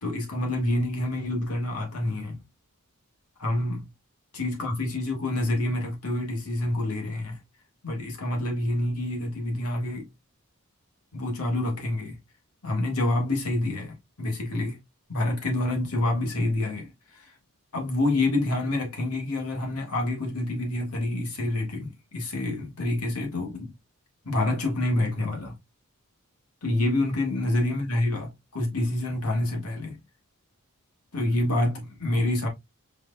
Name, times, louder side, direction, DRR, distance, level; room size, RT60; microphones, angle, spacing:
voice 1, 0.0-2.4 3.4-3.8 4.3-7.4 7.8-10.1 11.1-12.2 12.6-14.8 15.1-17.3 17.7-23.7 24.2-25.5 26.6-30.0 31.1-32.5, left 1 dB, 85° left, 1.8 m, -27 dB
4.7 x 3.9 x 2.2 m
head